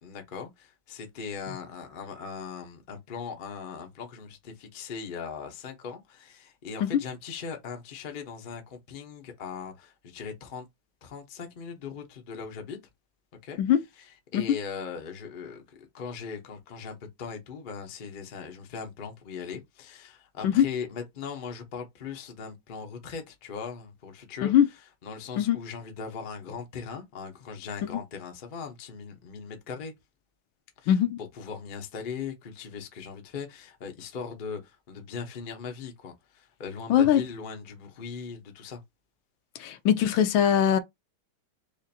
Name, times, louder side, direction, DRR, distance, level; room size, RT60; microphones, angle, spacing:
voice 1, 0.0-10.7 11.0-12.8 13.4-13.6 14.0-29.9 30.8-30.9 31.3-38.8, left 6 dB, 60° left, 0.5 m, -39 dB
voice 2, 30.9-31.2 36.9-37.2 39.6-40.8, left 9 dB, 75° left, 1.2 m, -21 dB
4.9 x 2.5 x 2.7 m
omnidirectional pair, 2.3 m